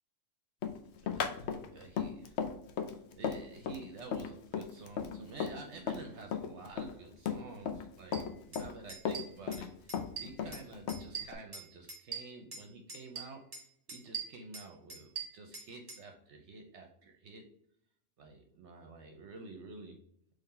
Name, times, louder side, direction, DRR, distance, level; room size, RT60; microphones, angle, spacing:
Run, 0.6-6.0 6.3-7.9 8.1-9.7 9.9-11.3, left 7 dB, 65° left, 0.8 m, -36 dB
voice 1, 1.0-2.4 2.9-17.5 18.2-20.0, right 3 dB, 65° right, 4 dB, 0.9 m, -50 dB
sound 1, 8.1-8.2 8.5-8.6 8.9-9.6 9.9-10.6 10.9-12.6 12.9-13.6 13.9-16.0, right 6 dB, 30° right, 1.3 m, -42 dB
3.7 x 3.4 x 4.2 m, 0.70 s
omnidirectional pair, 1.3 m